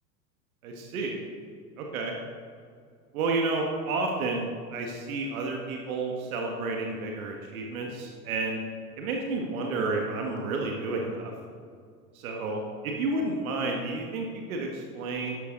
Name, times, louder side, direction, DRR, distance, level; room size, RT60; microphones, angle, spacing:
voice 1, 0.6-1.2 1.8-2.1 3.1-8.6 9.0-11.3 12.2-15.4, right 3 dB, 60° right, 1 dB, 1.8 m, -31 dB
12.5 x 11.5 x 4.0 m, 2.2 s
figure-of-eight pair, 85°, 47 cm